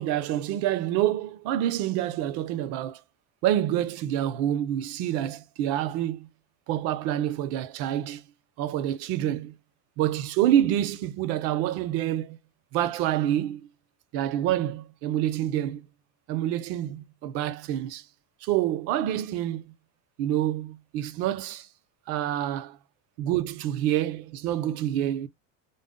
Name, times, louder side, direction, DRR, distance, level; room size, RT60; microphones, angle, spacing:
voice 1, 0.0-3.0 3.4-6.3 6.7-8.2 8.6-9.6 10.0-12.4 12.7-13.7 14.1-15.9 16.3-18.1 18.4-19.7 20.2-21.7 22.1-22.8 23.2-25.3, right 12 dB, 40° right, 0.5 m, -27 dB
3.8 x 2.0 x 3.6 m
cardioid pair, 175°, 36 cm